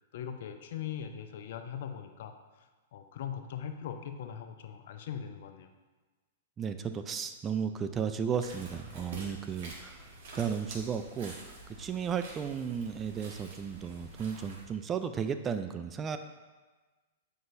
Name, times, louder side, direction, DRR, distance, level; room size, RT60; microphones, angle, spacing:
voice 1, 0.1-2.3 2.9-5.7, left 8 dB, 55° left, 7 dB, 0.5 m, -40 dB
voice 2, 6.6-10.1 10.3-11.4 11.8-16.2, right 7 dB, 20° right, 9 dB, 0.4 m, -34 dB
sound 1, 8.4-14.7, right 2 dB, 55° right, 1.7 m, -47 dB
7.7 x 5.4 x 2.6 m, 1.3 s
figure-of-eight pair, 105°, 0 cm